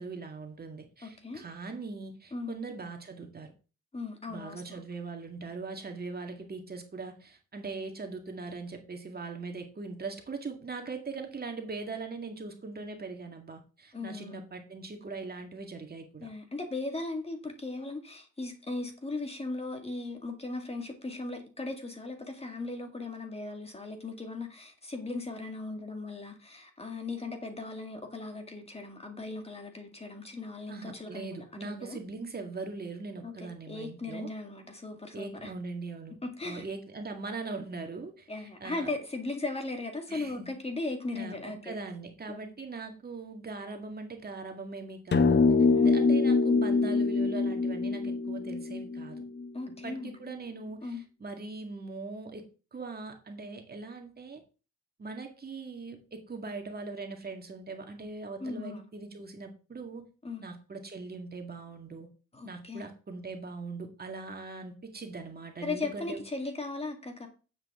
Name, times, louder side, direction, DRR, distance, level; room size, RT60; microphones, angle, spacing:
voice 1, 0.0-3.5 4.3-16.3 30.7-34.3 35.1-36.2 36.4-38.9 40.1-40.5 41.2-45.4 45.8-49.2 49.8-54.4 55.0-60.1 60.4-62.1 62.4-66.2, right 3 dB, 30° right, 4 dB, 2.0 m, -41 dB
voice 2, 1.0-1.4 2.3-2.6 3.9-4.8 13.9-14.4 16.2-32.0 33.2-35.5 36.2-36.6 38.3-41.7 42.3-42.5 45.7-45.9 49.5-50.1 50.8-51.0 58.4-58.8 60.2-60.4 62.3-62.9 65.6-67.3, left 3 dB, 20° left, 5 dB, 2.1 m, -38 dB
sound 1, 45.1-49.7, left 4 dB, 35° left, 0.9 m, -24 dB
8.8 x 7.8 x 3.7 m, 0.34 s
cardioid pair, 90°, 30 cm